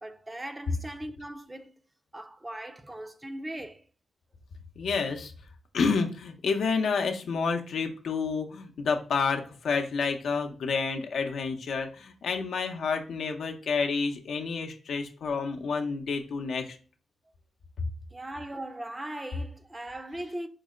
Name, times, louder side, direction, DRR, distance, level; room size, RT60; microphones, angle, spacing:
voice 1, 0.0-1.8 2.1-3.8 18.1-20.5, right 1 dB, 20° right, 0.5 m, -39 dB
voice 2, 4.8-5.3 5.7-16.8 17.8-17.9, left 5 dB, 75° left, 0.6 m, -29 dB
4.6 x 2.1 x 3.6 m
cardioid pair, 70°, 0 cm